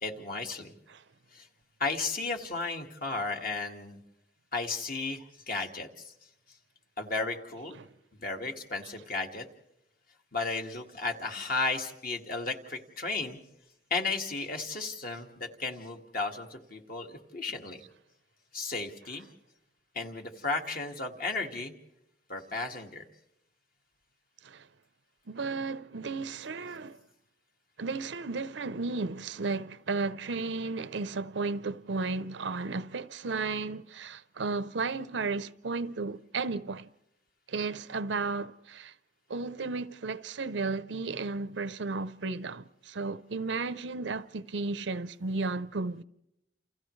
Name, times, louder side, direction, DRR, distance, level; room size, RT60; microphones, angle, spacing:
voice 1, 0.0-0.7 1.3-1.5 1.8-4.0 4.5-6.1 7.0-7.8 8.2-9.5 10.3-13.4 13.9-17.8 18.5-19.3 20.0-21.7 22.3-23.1, left 3 dB, 50° left, 1.9 m, -34 dB
voice 2, 25.3-27.0 27.8-36.9 37.5-38.9 39.3-46.0, right 3 dB, 75° right, 0.7 m, -34 dB
29.0 x 29.0 x 3.2 m
head